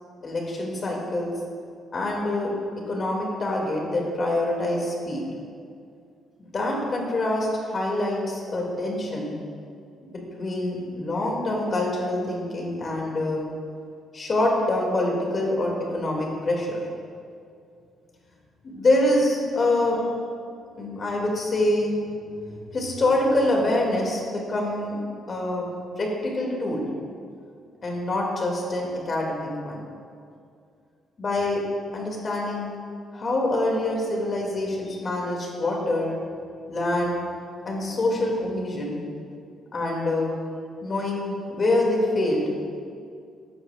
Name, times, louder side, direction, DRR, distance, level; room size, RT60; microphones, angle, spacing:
voice 1, 0.2-1.3 1.9-2.5 2.9-5.3 6.4-9.3 10.1-13.5 14.1-16.9 18.6-20.0 20.7-21.9 22.7-25.0 25.3-25.7 26.0-26.9 27.8-29.8 31.2-31.6 31.9-32.7 33.1-36.1 36.7-37.2 37.6-39.0 39.7-40.3 40.8-42.5, left 1 dB, 40° left, -1 dB, 2.4 m, -25 dB
13.5 x 8.6 x 2.4 m, 2.3 s
cardioid pair, 90°, 0 cm